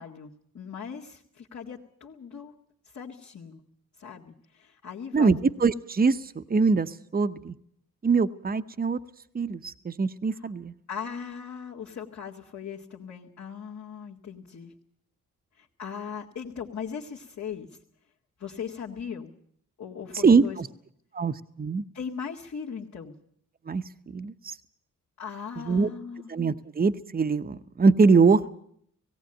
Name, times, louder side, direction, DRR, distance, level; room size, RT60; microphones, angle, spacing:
voice 1, 0.0-2.5 2.9-3.6 4.0-5.4 10.3-10.4 10.9-14.7 15.6-17.7 18.4-19.3 19.8-20.6 21.9-23.1 25.2-26.3, left 7 dB, 60° left, -5 dB, 2.1 m, -39 dB
voice 2, 5.1-7.5 8.0-9.0 9.3-10.7 20.2-20.7 21.1-21.8 23.7-23.8 24.1-24.5 25.6-25.9 26.3-28.5, right 4 dB, 30° right, 10 dB, 0.8 m, -23 dB
18.0 x 17.5 x 9.0 m, 0.67 s
cardioid pair, 85°, 31 cm